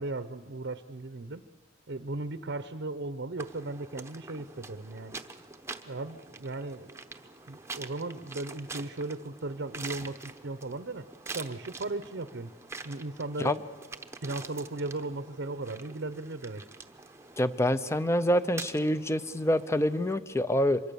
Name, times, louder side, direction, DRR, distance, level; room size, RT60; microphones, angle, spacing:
voice 1, 0.0-1.4 1.9-5.1 5.9-6.9 7.5-10.2 10.4-11.0 11.3-12.5 12.8-13.6 14.2-16.6, right 2 dB, 60° right, 12 dB, 0.8 m, -36 dB
sound 1, 3.4-20.1, right 4 dB, 15° right, 0.9 m, -45 dB
voice 2, 17.4-20.8, left 1 dB, 15° left, 13 dB, 0.6 m, -26 dB
24.5 x 23.0 x 6.9 m, 1.5 s
head